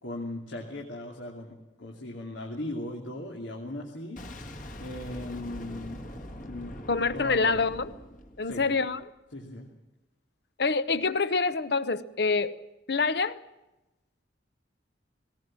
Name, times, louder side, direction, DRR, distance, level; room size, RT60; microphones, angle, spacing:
voice 1, 0.0-4.2 4.8-6.1 6.4-6.8 7.1-7.6 8.4-8.7 9.3-9.7, left 1 dB, 85° left, 0 dB, 2.7 m, -38 dB
Boom, 4.2-9.0, left 1 dB, 45° left, 1.8 m, -43 dB
voice 2, 6.9-7.9 8.4-9.0 10.6-12.6 12.9-13.4, left 4 dB, 60° left, 14 dB, 0.9 m, -26 dB
19.5 x 18.5 x 7.6 m, 0.98 s
head